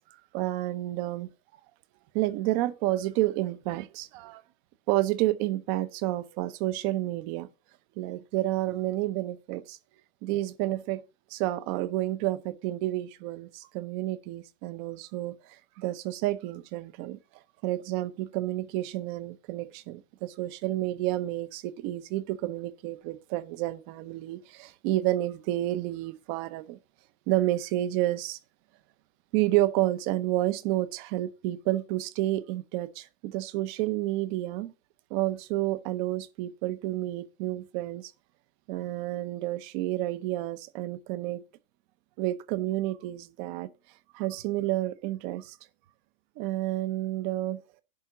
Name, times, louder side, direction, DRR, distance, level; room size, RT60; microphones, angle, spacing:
voice 1, 0.3-1.3 2.1-4.4 4.9-7.5 8.0-9.8 10.2-11.0 11.3-17.2 17.6-26.8 27.3-28.4 29.3-34.7 35.1-38.1 38.7-41.4 42.2-43.7 44.1-45.6 46.4-47.6, right 15 dB, 40° right, 0.8 m, -30 dB
10.5 x 3.7 x 7.0 m
supercardioid pair, 145°, 38 cm